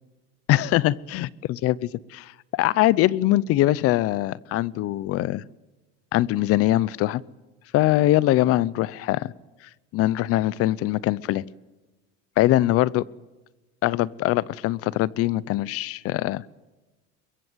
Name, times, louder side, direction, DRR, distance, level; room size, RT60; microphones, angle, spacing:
voice 1, 0.5-1.8 2.5-5.4 6.1-7.2 7.7-9.3 9.9-11.5 12.4-13.0 13.8-16.4, left 15 dB, 50° left, 22 dB, 0.7 m, -22 dB
23.5 x 22.5 x 8.1 m, 1.1 s
cardioid pair, 160°, 30 cm